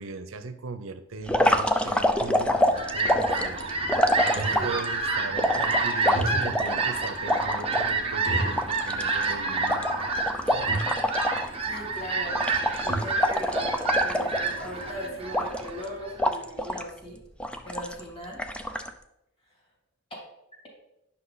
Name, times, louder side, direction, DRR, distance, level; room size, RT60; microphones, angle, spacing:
voice 1, 0.0-3.6 4.3-9.9 10.5-10.7, right 3 dB, 85° right, 10 dB, 0.7 m, -38 dB
sound 1, 1.3-4.9 5.4-7.9 8.3-8.4 8.6-11.5 11.8-12.0 12.3-14.8 15.3-15.8 16.2-16.9 17.4-18.0 18.4-18.9, left 1 dB, 5° left, 0.5 m, -26 dB
Fowl, 2.3-16.3, right 3 dB, 30° right, 1.0 m, -29 dB
sound 2, 3.5-4.9 5.9-6.8 7.1-7.2 8.2-9.1 9.4-9.5 10.3-10.4 10.7-11.0 12.3-12.4 12.6-13.2, right 1 dB, 65° left, 2.4 m, -34 dB
voice 2, 4.3-4.8 11.7-12.4 12.8-17.2 17.6-18.4, equal, 30° left, -3 dB, 3.0 m, -39 dB
10.0 x 5.8 x 4.0 m, 0.85 s
head